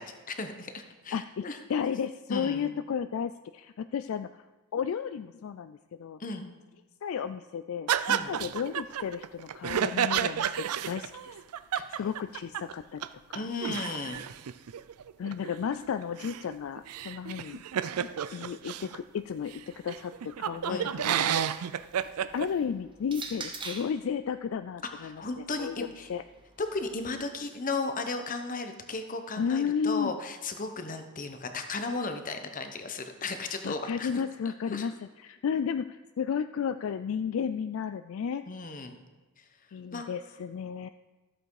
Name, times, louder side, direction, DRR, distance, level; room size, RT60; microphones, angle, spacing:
voice 1, 0.0-1.6 2.3-2.7 6.2-6.5 8.1-8.4 11.7-12.0 13.3-14.2 20.7-21.0 24.9-26.1 26.6-34.1 34.4-34.9 38.5-39.0 39.4-39.5 39.9-40.1, left 3 dB, 35° left, 7 dB, 1.0 m, -35 dB
voice 2, 1.1-1.4 1.7-4.4 4.7-6.2 7.0-11.4 12.0-13.5 15.2-17.6 18.3-21.6 22.3-25.2 25.6-26.2 29.4-30.1 33.6-38.4 39.7-40.9, left 7 dB, 65° left, 10 dB, 0.3 m, -33 dB
sound 1, 7.9-12.7 13.0-13.1 13.3-19.0 19.5-19.6 19.9-22.5, right 9 dB, 85° right, 0.4 m, -31 dB
sound 2, 21.6-24.0 25.0-27.1, right 4 dB, 20° right, 1.0 m, -45 dB
13.5 x 7.7 x 4.8 m, 1.2 s
head